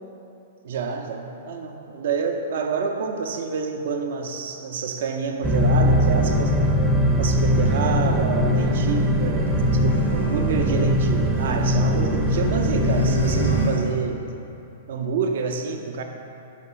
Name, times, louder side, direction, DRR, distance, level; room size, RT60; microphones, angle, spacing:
voice 1, 0.6-6.8 7.2-14.3 14.9-16.0, right 5 dB, 55° right, 3 dB, 0.5 m, -28 dB
sound 1, 5.4-13.7, equal, 10° right, 0.6 m, -21 dB
sound 2, 9.2-11.6 11.9-14.5, equal, 90° left, 0.6 m, -31 dB
5.9 x 4.1 x 5.6 m, 2.7 s
figure-of-eight pair, 105°, 0 cm